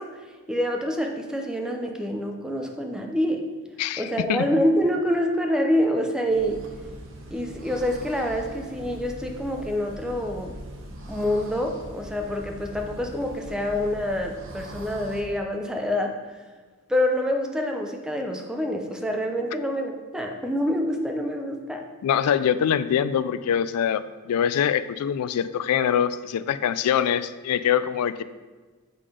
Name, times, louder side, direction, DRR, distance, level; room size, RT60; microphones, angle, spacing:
voice 1, 0.0-3.5 4.0-6.6 7.3-10.6 11.1-16.2 16.9-21.9, equal, 5° right, 2 dB, 0.5 m, -26 dB
voice 2, 3.8-4.4 22.0-28.2, left 8 dB, 80° left, 15 dB, 0.3 m, -24 dB
sound 1, 6.3-15.2, right 1 dB, 60° right, 0.9 m, -41 dB
6.8 x 3.7 x 4.9 m, 1.3 s
head